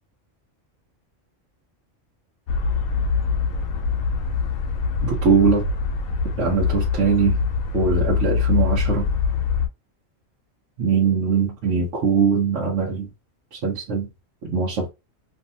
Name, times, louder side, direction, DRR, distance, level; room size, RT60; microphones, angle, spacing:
sound 1, 2.5-9.7, left 5 dB, 80° left, 1.0 m, -23 dB
voice 1, 5.0-5.7 6.4-7.4 7.7-9.1 10.8-13.1 13.5-14.1 14.4-14.9, right 5 dB, 70° right, 1.0 m, -21 dB
2.6 x 2.5 x 2.6 m
omnidirectional pair, 1.4 m